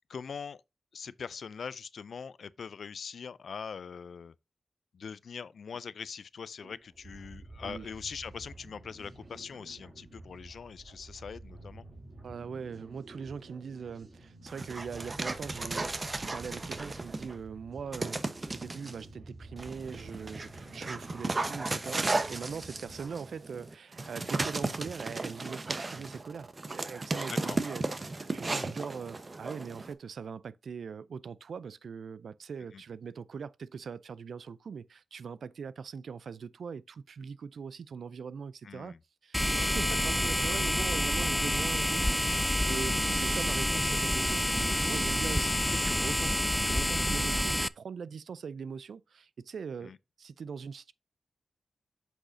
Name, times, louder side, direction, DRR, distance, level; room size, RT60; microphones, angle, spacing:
voice 1, 0.1-0.6 0.9-4.3 4.9-11.9 27.3-27.6 32.7-32.8 38.6-39.0 46.0-46.2 49.8-50.0, left 6 dB, 80° left, 0.4 m, -42 dB
sound 1, 6.6-23.1, right 2 dB, 60° right, 2.8 m, -50 dB
voice 2, 12.2-18.2 18.5-39.0 39.2-46.3 46.6-49.9 50.2-50.9, right 6 dB, 80° right, 0.4 m, -41 dB
Dog, 14.5-17.4 17.9-18.9 19.6-29.9, right 3 dB, 40° right, 1.0 m, -35 dB
sound 2, 39.3-47.7, equal, 5° left, 0.3 m, -28 dB
8.0 x 6.3 x 2.7 m
cardioid pair, 55°, 0 cm